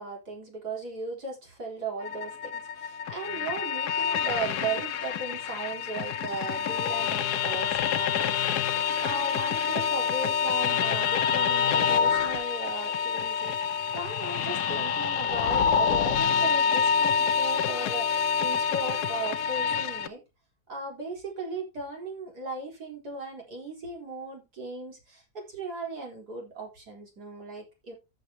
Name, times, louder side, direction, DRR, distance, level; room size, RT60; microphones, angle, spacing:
voice 1, 0.0-8.7 9.0-20.2 20.7-27.9, right 3 dB, 90° right, -1 dB, 4.5 m, -37 dB
sound 1, 2.0-20.1, left 7 dB, 90° left, 1.3 m, -27 dB
14.0 x 7.3 x 2.9 m, 0.25 s
omnidirectional pair, 1.7 m